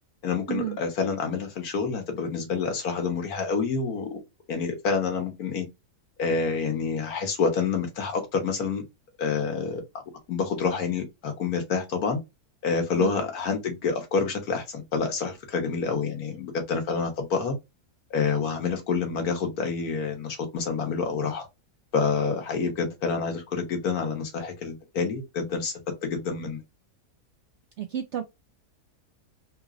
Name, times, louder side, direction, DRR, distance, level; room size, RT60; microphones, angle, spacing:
voice 1, 0.2-4.2 4.5-5.7 6.2-8.8 9.2-9.8 10.3-12.2 12.6-17.6 18.1-21.5 21.9-25.7 26.0-26.6, left 5 dB, 70° left, 1.5 m, -28 dB
voice 2, 27.8-28.2, right 9 dB, 70° right, 0.6 m, -31 dB
3.8 x 2.9 x 2.4 m
omnidirectional pair, 1.7 m